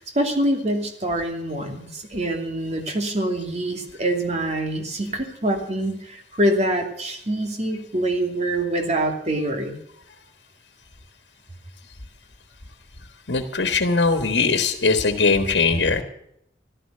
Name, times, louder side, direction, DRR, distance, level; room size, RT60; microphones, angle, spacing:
voice 1, 0.0-9.8, right 1 dB, 40° right, 4 dB, 2.7 m, -25 dB
voice 2, 13.3-16.0, left 4 dB, 80° left, 7 dB, 1.5 m, -20 dB
15.0 x 13.0 x 6.7 m, 0.73 s
head